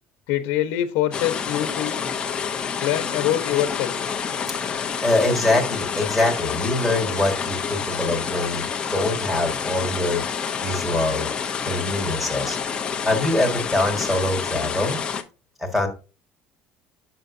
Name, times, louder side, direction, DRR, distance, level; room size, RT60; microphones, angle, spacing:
voice 1, 0.3-2.0 2.8-3.9, left 12 dB, 75° left, 1.0 m, -24 dB
sound 1, 1.1-15.2, left 6 dB, 20° left, 0.6 m, -28 dB
voice 2, 4.5-8.6 8.9-11.3 11.6-12.6 13.0-15.0 15.6-15.9, left 2 dB, ahead, 1.5 m, -24 dB
7.0 x 6.4 x 2.6 m
cardioid pair, 175°, 5 cm